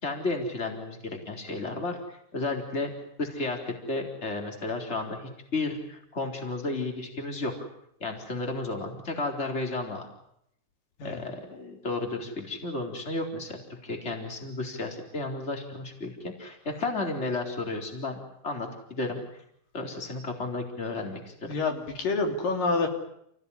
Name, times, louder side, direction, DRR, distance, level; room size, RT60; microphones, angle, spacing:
voice 1, 0.0-2.9 3.2-7.5 8.0-10.1 11.0-18.2 18.4-19.2 19.7-21.3, left 3 dB, 20° left, 3 dB, 4.1 m, -33 dB
voice 2, 21.5-22.9, left 3 dB, 80° left, 4 dB, 4.9 m, -27 dB
29.0 x 17.5 x 10.0 m, 0.76 s
omnidirectional pair, 3.9 m